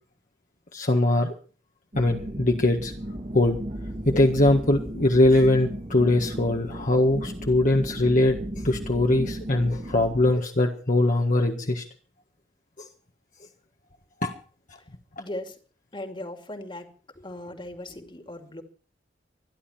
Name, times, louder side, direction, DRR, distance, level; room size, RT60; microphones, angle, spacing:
voice 1, 0.7-1.3 1.9-2.9 3.3-3.6 4.0-8.4 8.6-11.8 12.8-12.9 14.2-14.3, left 2 dB, 45° left, 2 dB, 1.7 m, -21 dB
sound 1, 1.9-10.3, right 1 dB, 35° right, 2.2 m, -35 dB
voice 2, 15.2-15.6 15.9-18.6, left 1 dB, 30° left, 7 dB, 2.4 m, -38 dB
25.5 x 11.0 x 4.4 m, 0.41 s
head